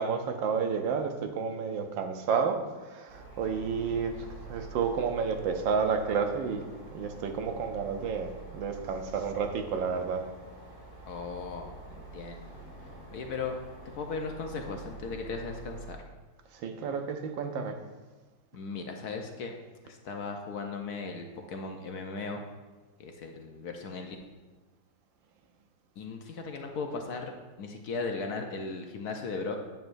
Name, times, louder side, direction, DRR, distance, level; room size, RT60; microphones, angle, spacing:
voice 1, 0.0-4.1 4.4-6.6 6.9-8.3 8.5-10.3 16.6-17.8, right 6 dB, 80° right, 5 dB, 1.5 m, -30 dB
sound 1, 3.1-15.9, right 3 dB, 55° right, 2.7 m, -47 dB
voice 2, 11.1-12.5 13.1-13.6 13.9-16.0 18.5-19.5 19.8-22.4 23.0-24.2 26.0-29.6, left 4 dB, 65° left, 3 dB, 1.1 m, -37 dB
9.1 x 8.0 x 2.6 m, 1.2 s
omnidirectional pair, 2.0 m